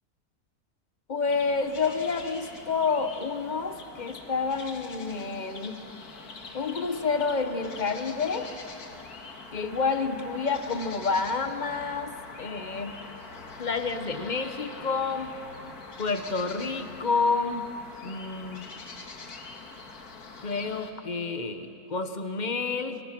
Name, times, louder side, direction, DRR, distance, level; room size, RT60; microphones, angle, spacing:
voice 1, 1.1-5.8 6.5-8.5 9.5-13.0 13.6-15.3 16.0-17.7 18.0-18.7 20.4-23.0, left 4 dB, 30° left, 9 dB, 1.1 m, -29 dB
sound 1, 1.3-20.9, left 3 dB, 75° left, 2.3 m, -44 dB
29.0 x 25.0 x 6.0 m, 2.8 s
omnidirectional pair, 1.6 m